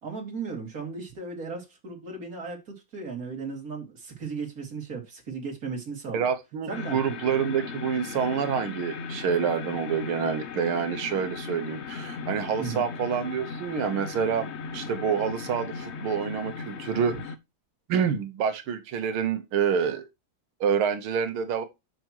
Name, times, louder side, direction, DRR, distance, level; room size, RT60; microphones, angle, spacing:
voice 1, 0.0-6.3 6.7-7.2 12.6-12.8, right 4 dB, 40° right, 3.3 m, -36 dB
voice 2, 6.1-17.2 17.9-20.1 20.6-21.6, right 7 dB, 85° right, 2.0 m, -27 dB
sound 1, 6.7-17.4, left 5 dB, 65° left, 0.6 m, -37 dB
12.0 x 6.2 x 3.0 m
omnidirectional pair, 2.3 m